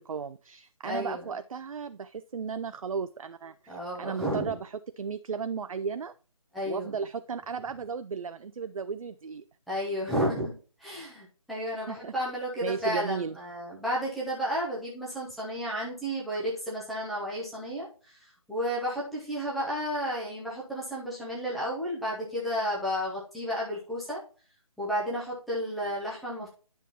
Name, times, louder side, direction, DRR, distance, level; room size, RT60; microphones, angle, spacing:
voice 1, 0.0-6.1 6.6-9.4 11.9-12.1 12.6-13.4, right 6 dB, 70° right, 11 dB, 0.4 m, -35 dB
voice 2, 0.8-1.3 3.7-4.6 6.5-6.9 9.7-24.2 24.8-26.5, equal, ahead, -7 dB, 0.4 m, -32 dB
10.0 x 5.5 x 2.9 m, 0.39 s
figure-of-eight pair, 150°, 19 cm